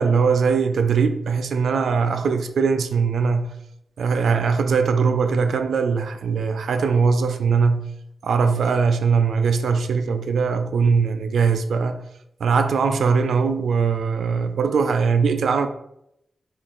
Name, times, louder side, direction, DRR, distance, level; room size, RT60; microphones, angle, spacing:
voice 1, 0.0-3.5 4.0-7.9 8.2-12.0 12.4-15.7, right 5 dB, 85° right, 0.4 m, -21 dB
4.1 x 3.0 x 3.8 m
wide cardioid pair, 110°, 0 cm